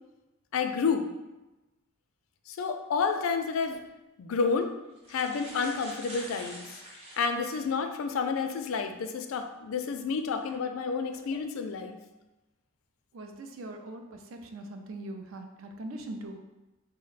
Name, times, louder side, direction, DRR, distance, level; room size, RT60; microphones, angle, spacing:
voice 1, 0.5-1.1 2.5-3.8 4.2-4.7 5.1-6.8 7.2-12.0, left 5 dB, 75° left, 6 dB, 0.4 m, -30 dB
sound 1, 3.6-3.8 4.6-4.7 5.0-7.8 8.3-8.4 10.3-10.5 11.1-11.4, right 1 dB, 30° right, 0.8 m, -46 dB
voice 2, 13.1-16.4, right 1 dB, 75° right, 5 dB, 0.4 m, -41 dB
3.7 x 2.1 x 3.9 m, 1.0 s
head